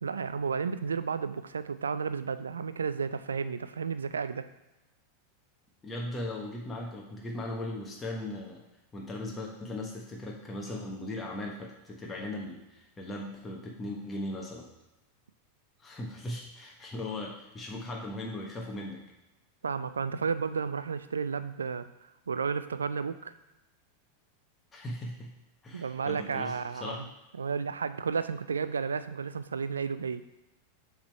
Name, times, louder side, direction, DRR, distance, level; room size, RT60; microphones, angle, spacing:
voice 1, 0.0-4.5 19.6-21.9 22.3-23.3 25.7-27.1 27.4-30.2, right 5 dB, 75° right, 12 dB, 0.4 m, -32 dB
voice 2, 5.8-8.6 8.9-14.7 15.8-19.0 24.7-25.3 25.6-27.0, left 1 dB, 15° left, -1 dB, 1.2 m, -38 dB
7.1 x 3.7 x 4.6 m, 1.0 s
figure-of-eight pair, 90°, 0 cm